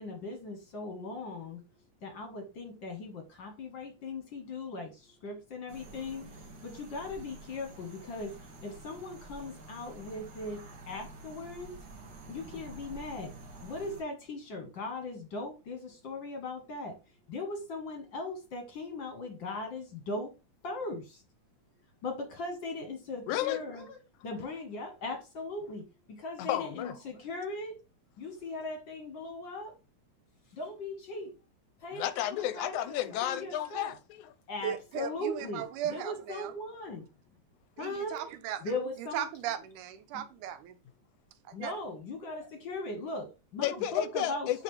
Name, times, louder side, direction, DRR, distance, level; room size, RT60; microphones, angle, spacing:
voice 1, 0.0-1.6 2.0-6.2 6.6-8.3 8.6-11.7 12.3-13.3 13.6-17.0 17.3-20.3 20.6-21.2 22.0-24.0 24.2-27.8 28.2-29.7 30.5-31.3 31.8-32.8 33.2-33.9 34.5-37.1 37.8-38.2 38.6-39.3 41.5-44.5, left 2 dB, 55° left, 1.4 m, -39 dB
sound 1, 5.7-14.0, right 2 dB, 45° right, 1.3 m, -49 dB
voice 2, 23.3-23.6 26.4-26.9 31.9-34.3 43.6-44.6, left 12 dB, 90° left, 2.1 m, -32 dB
voice 3, 34.6-36.5 37.8-38.7 39.0-40.8 41.5-41.8, right 10 dB, 90° right, 2.2 m, -37 dB
10.0 x 3.8 x 3.1 m
omnidirectional pair, 3.5 m